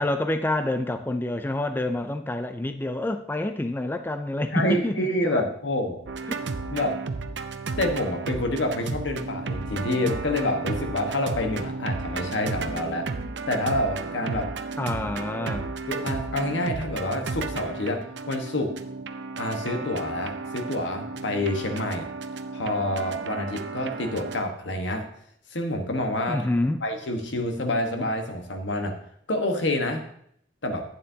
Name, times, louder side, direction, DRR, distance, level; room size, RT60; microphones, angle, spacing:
voice 1, 0.0-5.4 6.3-6.5 14.8-15.7 26.3-26.8, left 1 dB, 10° left, 8 dB, 0.4 m, -27 dB
voice 2, 4.5-6.0 6.7-7.0 7.8-13.1 13.5-14.5 15.3-15.4 15.9-18.0 18.3-18.7 19.4-22.1 22.5-25.1 25.5-26.5 26.8-28.9 29.3-30.0 30.6-30.8, left 1 dB, 85° left, 4 dB, 1.3 m, -27 dB
sound 1, 6.1-24.4, right 4 dB, 75° right, 0.6 m, -33 dB
11.5 x 8.9 x 2.8 m, 0.68 s
head